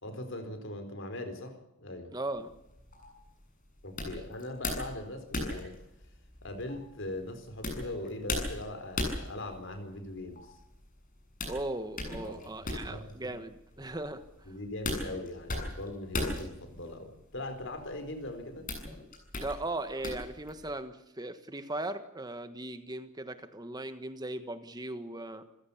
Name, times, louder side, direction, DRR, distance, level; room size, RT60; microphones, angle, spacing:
voice 1, 0.0-2.2 3.8-5.8 6.4-10.6 12.2-13.3 14.5-18.7, left 1 dB, 60° left, 4.3 m, -40 dB
voice 2, 2.1-2.5 11.5-14.2 19.4-25.4, right 2 dB, 20° right, 1.4 m, -38 dB
sound 1, 2.3-20.8, left 2 dB, 40° left, 7.5 m, -39 dB
28.5 x 16.0 x 7.2 m
head